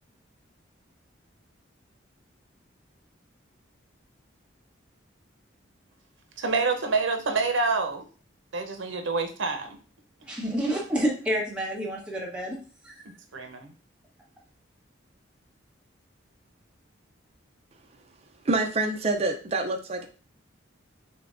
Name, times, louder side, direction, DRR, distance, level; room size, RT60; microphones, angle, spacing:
voice 1, 6.4-8.0 8.5-9.8 13.3-13.7, right 3 dB, 75° right, 0.7 m, -27 dB
voice 2, 10.2-12.6 12.8-13.1, equal, 5° right, 1.1 m, -29 dB
voice 3, 18.4-20.1, right 2 dB, 30° right, 0.5 m, -26 dB
6.6 x 2.2 x 2.5 m
head